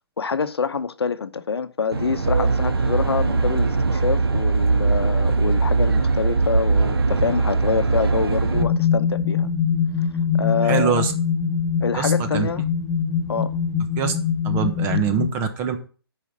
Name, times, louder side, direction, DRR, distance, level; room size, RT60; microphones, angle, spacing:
voice 1, 0.2-9.5 10.4-11.0 11.8-12.6 13.3-13.6, left 5 dB, 80° left, 1.1 m, -26 dB
Aircraft, 1.9-8.6, right 3 dB, 70° right, 1.8 m, -20 dB
sound 1, 8.5-15.3, left 7 dB, 10° left, 1.2 m, -23 dB
voice 2, 10.6-11.1 11.9-12.5 14.0-14.1 14.4-15.9, right 7 dB, 20° right, 1.2 m, -24 dB
8.4 x 5.6 x 7.4 m
hypercardioid pair, 155°, 13 cm